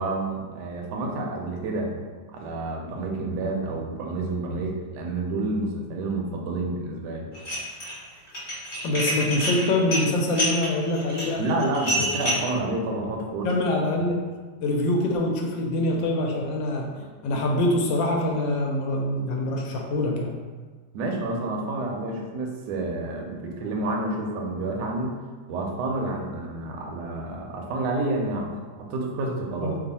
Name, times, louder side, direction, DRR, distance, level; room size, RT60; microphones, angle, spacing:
voice 1, 0.0-1.9 2.3-7.3 11.4-13.5 20.9-25.1 25.5-29.8, right 2 dB, 75° right, 0 dB, 1.1 m, -29 dB
Dishes pots and pans, 7.3-7.9 8.3-12.5, equal, 30° left, 1.2 m, -28 dB
voice 2, 8.8-11.4 12.0-12.1 13.4-14.2 14.6-20.3 29.6-29.8, left 1 dB, 75° left, 0 dB, 1.2 m, -25 dB
3.1 x 2.3 x 4.0 m, 1.4 s
omnidirectional pair, 2.1 m